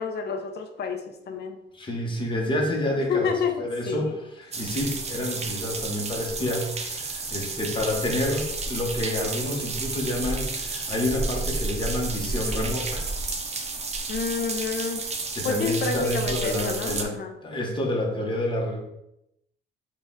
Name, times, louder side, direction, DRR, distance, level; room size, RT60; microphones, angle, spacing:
voice 1, 0.0-1.6 3.1-4.1 14.1-15.0 15.4-17.4, left 5 dB, 60° left, 6 dB, 0.6 m, -29 dB
voice 2, 1.7-3.3 3.6-13.1 15.3-17.2 17.4-18.9, left 1 dB, 25° left, 0 dB, 1.1 m, -28 dB
sound 1, 4.5-17.0, right 3 dB, 35° right, 0.6 m, -31 dB
4.0 x 2.4 x 3.8 m, 0.84 s
cardioid pair, 90°, 20 cm